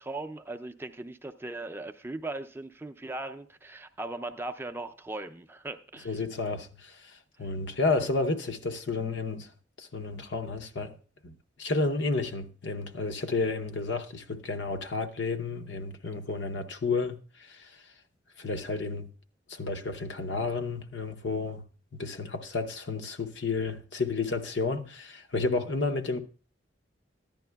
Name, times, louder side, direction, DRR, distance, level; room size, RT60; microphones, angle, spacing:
voice 1, 0.0-6.2, right 2 dB, 15° right, 0.4 m, -38 dB
voice 2, 6.0-9.5 9.8-11.0 11.2-11.3 11.6-17.8 18.4-19.1 19.5-21.6 21.9-26.2, left 3 dB, 75° left, 0.7 m, -31 dB
14.0 x 10.5 x 2.3 m
head